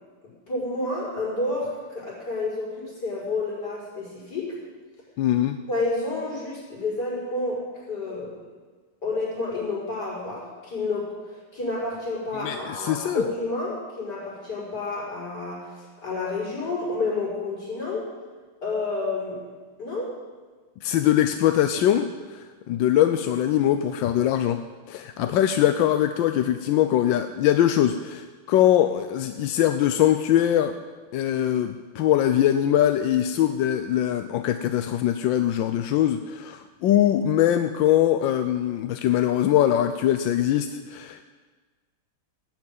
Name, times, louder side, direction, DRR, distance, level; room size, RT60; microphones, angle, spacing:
voice 1, 0.5-4.6 5.7-8.4 9.0-18.1 18.6-19.5 19.8-20.1, left 3 dB, 50° left, -7 dB, 6.3 m, -30 dB
voice 2, 5.2-5.6 12.3-13.2 20.8-24.6 24.9-30.8 31.1-41.2, left 11 dB, 75° left, 8 dB, 1.2 m, -22 dB
17.5 x 6.2 x 9.1 m, 1.4 s
omnidirectional pair, 2.3 m